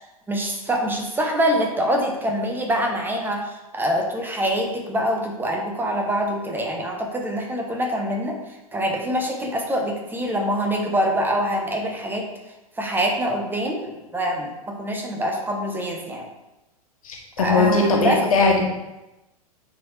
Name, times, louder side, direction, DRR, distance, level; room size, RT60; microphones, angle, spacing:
voice 1, 0.3-8.4 8.7-12.3 12.8-16.3 17.4-18.2, equal, 10° right, 2 dB, 1.0 m, -25 dB
voice 2, 17.0-18.6, left 4 dB, 65° left, 0 dB, 1.6 m, -20 dB
9.1 x 4.5 x 3.3 m, 0.98 s
figure-of-eight pair, 100°, 19 cm